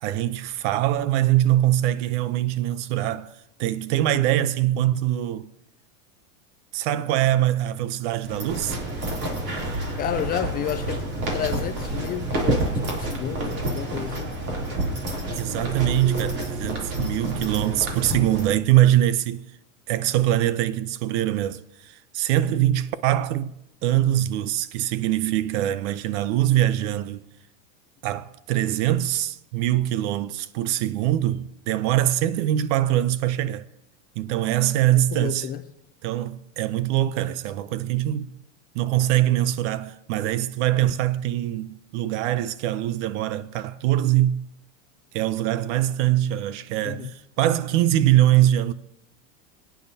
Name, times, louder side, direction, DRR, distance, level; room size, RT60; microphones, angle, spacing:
voice 1, 0.0-5.5 6.7-8.8 15.3-19.4 19.9-23.6 23.8-27.2 28.0-33.6 34.2-35.5 36.0-38.3 38.7-44.4 45.1-48.7, right 13 dB, 60° right, 0.7 m, -23 dB
sound 1, 8.2-18.5, right 1 dB, 35° right, 3.1 m, -28 dB
voice 2, 10.0-14.3 34.9-35.6 46.8-47.1, left 10 dB, 25° left, 0.4 m, -31 dB
20.0 x 9.3 x 2.8 m
supercardioid pair, 130°, 40 cm